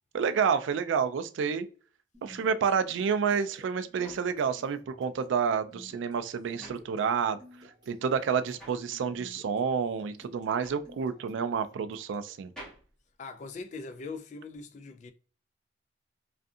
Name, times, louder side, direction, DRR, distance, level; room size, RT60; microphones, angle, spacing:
voice 1, 0.1-1.7 2.2-7.4 7.9-12.5, right 6 dB, 80° right, 0.3 m, -29 dB
sound 1, 2.1-12.4, left 1 dB, 20° right, 1.1 m, -55 dB
sound 2, 4.0-7.6 7.9-14.1, right 1 dB, 5° left, 1.1 m, -53 dB
voice 2, 13.2-15.1, left 4 dB, 40° left, 0.3 m, -41 dB
2.6 x 2.5 x 2.3 m
head